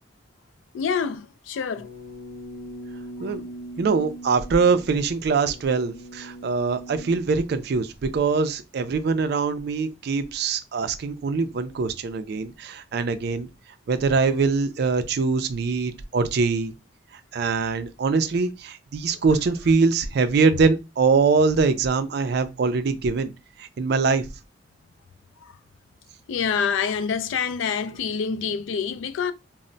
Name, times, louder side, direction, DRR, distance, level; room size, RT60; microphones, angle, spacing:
voice 1, 0.7-1.9 25.4-25.6 26.3-29.3, left 6 dB, 80° left, 0.3 m, -26 dB
sound 1, 1.7-7.2, right 1 dB, 50° left, 0.7 m, -40 dB
voice 2, 3.8-13.5 13.9-16.7 17.3-23.3 23.6-24.3, right 4 dB, 55° right, 0.4 m, -23 dB
2.1 x 2.0 x 3.8 m
head